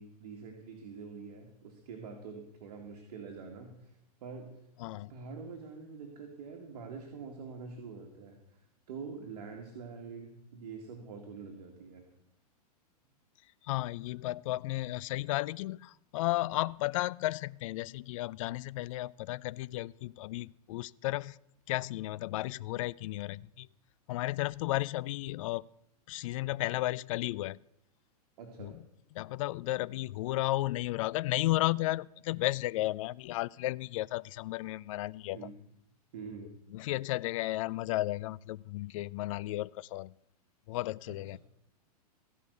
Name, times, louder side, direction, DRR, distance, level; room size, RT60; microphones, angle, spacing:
voice 1, 0.0-3.9 4.2-4.5 4.8-8.4 8.9-12.1 28.4-28.8 35.3-35.5 36.1-36.6 41.1-41.4, right 5 dB, 65° right, 2 dB, 2.1 m, -45 dB
voice 2, 4.8-5.1 13.6-21.4 21.7-23.7 24.1-25.6 26.1-27.6 28.6-28.8 29.2-35.5 36.7-40.1 40.7-41.4, left 17 dB, 55° left, 21 dB, 0.4 m, -33 dB
15.5 x 5.4 x 8.0 m, 0.84 s
hypercardioid pair, 125°, 20 cm